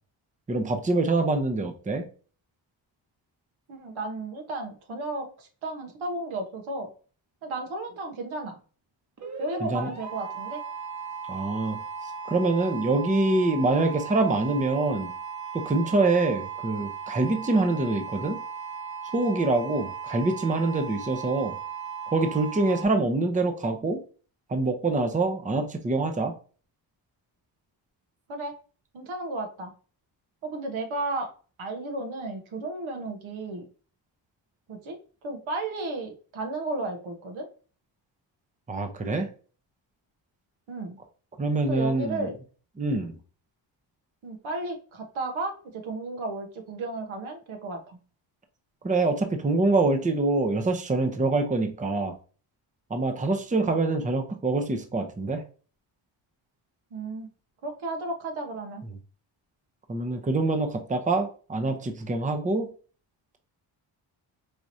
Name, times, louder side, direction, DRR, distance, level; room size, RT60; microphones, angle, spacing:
voice 1, 0.5-2.1 9.6-9.9 11.3-11.8 12.3-15.1 15.5-18.4 19.1-21.5 22.1-24.0 24.5-26.3 38.7-39.3 41.4-42.3 42.8-43.1 48.8-52.1 52.9-55.4 59.9-62.7, right 2 dB, 15° right, 6 dB, 0.7 m, -25 dB
voice 2, 3.7-6.9 7.4-8.6 9.4-10.6 28.3-28.5 28.9-29.7 30.4-31.3 31.6-33.6 34.7-35.0 35.2-37.5 40.7-41.0 41.7-42.3 44.2-48.0 56.9-57.3 57.6-58.8, right 2 dB, 75° right, 3 dB, 1.1 m, -33 dB
sound 1, 9.2-22.8, right 6 dB, 35° right, 1.1 m, -37 dB
4.8 x 2.9 x 2.6 m, 0.39 s
cardioid pair, 65°, 47 cm